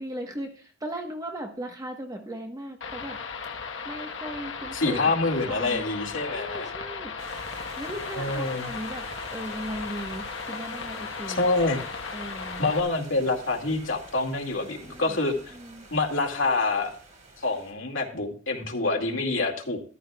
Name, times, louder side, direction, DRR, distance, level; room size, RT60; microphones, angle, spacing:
voice 1, 0.0-3.2 3.8-5.1 5.4-5.8 6.2-7.1 7.7-9.1 9.3-11.5 12.1-12.7 14.7-15.9 19.3-19.8, right 1 dB, 20° right, 3 dB, 1.2 m, -38 dB
sound 1, 2.8-12.8, left 5 dB, 70° left, 1.3 m, -36 dB
voice 2, 4.7-6.7 8.2-8.7 11.4-11.8 12.6-15.5 15.9-16.9 17.4-19.8, left 3 dB, 85° left, 1 dB, 2.3 m, -26 dB
sound 2, 7.2-17.7, right 2 dB, 40° right, 4.6 m, -47 dB
13.5 x 12.5 x 2.4 m, 0.41 s
head